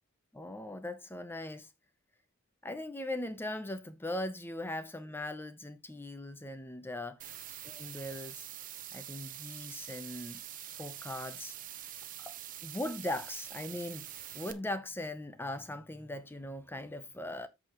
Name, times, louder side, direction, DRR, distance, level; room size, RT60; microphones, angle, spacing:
voice 1, 0.3-1.7 2.6-7.2 7.6-8.5 8.9-10.4 10.8-11.6 12.2-12.4 12.6-17.5, left 1 dB, 10° left, 0.7 m, -39 dB
sound 1, 7.2-14.5, right 11 dB, 40° right, 0.8 m, -45 dB
13.5 x 4.9 x 3.0 m
head